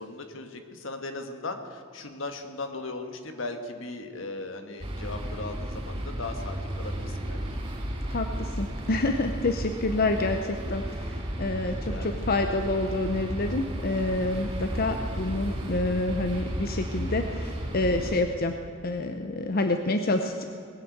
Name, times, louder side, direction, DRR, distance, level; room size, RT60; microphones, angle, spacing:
voice 1, 0.0-7.6 11.6-12.3, left 2 dB, 75° left, 6 dB, 1.5 m, -38 dB
sound 1, 4.8-18.2, equal, 30° right, 3.9 m, -33 dB
voice 2, 8.1-18.6 18.8-20.4, left 2 dB, 50° left, 6 dB, 0.7 m, -28 dB
19.5 x 7.5 x 7.9 m, 2.5 s
head